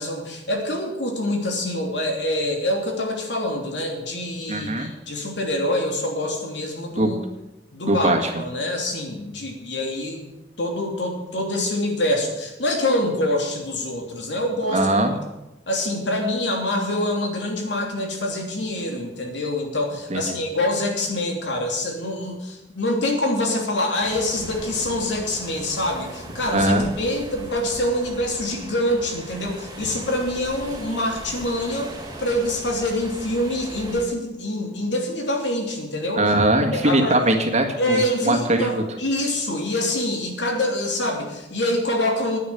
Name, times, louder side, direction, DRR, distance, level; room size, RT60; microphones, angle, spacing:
voice 1, 0.0-7.2 7.7-10.3 10.6-14.9 15.7-31.9 32.2-36.2 36.7-37.2 37.8-42.4, left 1 dB, 85° left, 1 dB, 3.0 m, -25 dB
voice 2, 4.5-4.9 7.0-7.1 7.9-8.3 14.7-15.1 20.1-20.4 26.5-26.9 36.2-38.8, right 1 dB, 40° right, 4 dB, 1.8 m, -21 dB
sound 1, 24.0-34.0, right 1 dB, 20° right, 2.5 m, -39 dB
10.5 x 9.4 x 8.1 m, 0.98 s
head